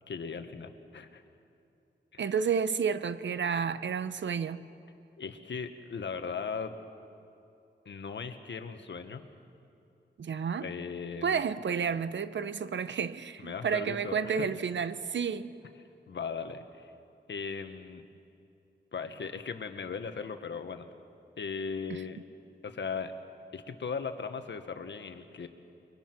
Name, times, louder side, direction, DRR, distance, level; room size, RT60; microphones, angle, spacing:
voice 1, 0.1-1.2 2.1-2.2 5.2-6.8 7.8-9.3 10.6-11.4 13.4-14.5 16.1-16.9 17.3-18.0 18.9-20.9 21.4-22.2 22.6-23.1 23.5-25.5, left 5 dB, 75° left, 1.4 m, -38 dB
voice 2, 2.2-4.6 10.2-10.7 11.2-15.5 21.9-22.0, right 6 dB, 80° right, 0.8 m, -31 dB
28.5 x 22.5 x 6.1 m
wide cardioid pair, 120°, 19 cm